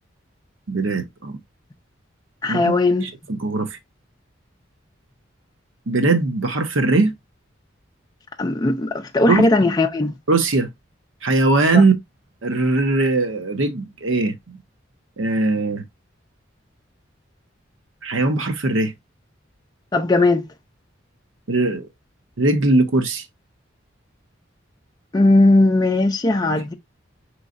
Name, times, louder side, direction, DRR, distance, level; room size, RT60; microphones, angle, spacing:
voice 1, 0.7-1.4 2.5-2.6 3.0-3.8 5.9-7.1 9.3-9.4 10.3-10.7 11.2-11.9 12.4-14.6 15.2-15.8 18.0-18.9 21.5-21.9 22.4-23.2 26.5-26.6, right 2 dB, 80° right, 0.8 m, -20 dB
voice 2, 2.4-3.1 8.4-10.1 11.7-11.8 19.9-20.5 25.1-26.7, left 2 dB, 20° left, 0.4 m, -18 dB
4.9 x 3.1 x 2.5 m
head